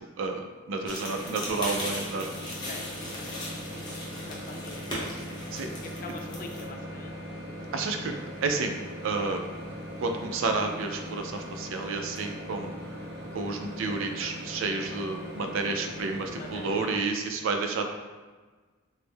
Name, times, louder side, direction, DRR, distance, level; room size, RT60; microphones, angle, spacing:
voice 1, 0.2-2.5 5.5-5.7 7.7-8.1 8.4-8.8 9.0-9.4 10.0-12.7 13.3-17.9, right 3 dB, 65° right, 4 dB, 0.4 m, -30 dB
Microwave oven, 0.7-17.0, equal, 50° right, 0.8 m, -40 dB
sound 1, 0.9-6.6, left 1 dB, 20° left, 0.7 m, -38 dB
voice 2, 2.5-3.7 4.3-5.4 5.8-7.2 16.3-17.4, left 3 dB, 45° left, 3 dB, 0.3 m, -45 dB
3.5 x 2.0 x 3.2 m, 1.4 s
head